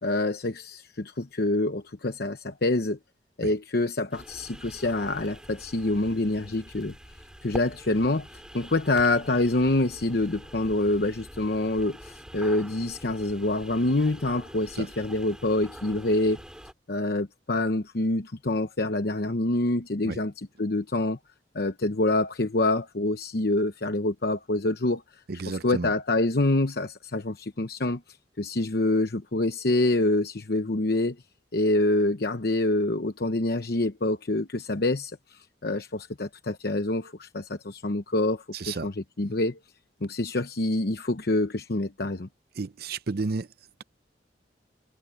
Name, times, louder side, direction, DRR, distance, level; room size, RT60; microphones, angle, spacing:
voice 1, 0.0-3.0 3.4-6.9 7.4-8.3 8.5-16.4 16.9-21.2 21.5-25.0 25.5-28.0 28.4-31.2 31.5-39.6 40.0-42.3, left 2 dB, 60° left, 1.0 m, -26 dB
sound 1, 4.1-16.7, equal, 5° right, 2.3 m, -45 dB
voice 2, 25.3-25.9 38.5-38.9 42.6-43.5, right 4 dB, 60° right, 0.6 m, -32 dB
head